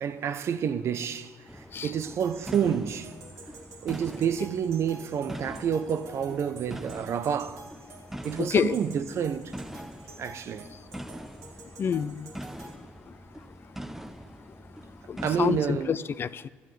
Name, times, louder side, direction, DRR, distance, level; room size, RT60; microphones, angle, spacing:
voice 1, 0.0-3.1 3.8-7.7 8.2-9.5 10.2-10.7 15.2-16.0, right 8 dB, 60° right, 0.8 m, -29 dB
sound 1, 1.5-15.9, equal, 5° right, 0.7 m, -43 dB
sound 2, 2.0-12.8, right 3 dB, 75° right, 2.0 m, -49 dB
voice 2, 8.4-8.8 11.8-12.2 15.1-16.5, left 7 dB, 45° left, 0.5 m, -27 dB
13.5 x 8.1 x 9.3 m
supercardioid pair, 70°, 5 cm